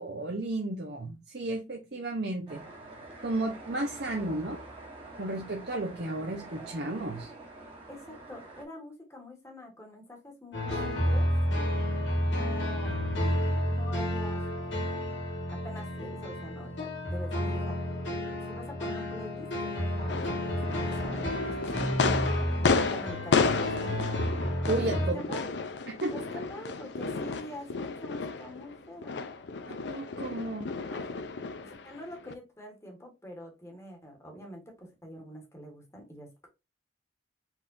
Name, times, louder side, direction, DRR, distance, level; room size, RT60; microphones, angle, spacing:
voice 1, 0.0-2.6 3.2-4.6 5.2-7.3 24.7-25.4 26.0-26.1 29.7-30.7, right 2 dB, 60° right, 1 dB, 0.7 m, -33 dB
sound 1, 2.5-8.6, right 2 dB, 30° right, 1.3 m, -46 dB
voice 2, 7.9-11.3 12.3-13.0 13.7-15.0 15.5-17.8 18.5-21.7 22.6-24.2 24.7-24.8 25.1-25.5 26.1-29.3 30.9-31.1 31.6-36.5, equal, 15° left, 2 dB, 1.3 m, -45 dB
sound 2, 10.5-25.1, equal, 90° left, 1.8 m, -31 dB
sound 3, 20.1-32.3, left 4 dB, 70° left, 0.5 m, -32 dB
4.5 x 3.7 x 2.6 m, 0.25 s
head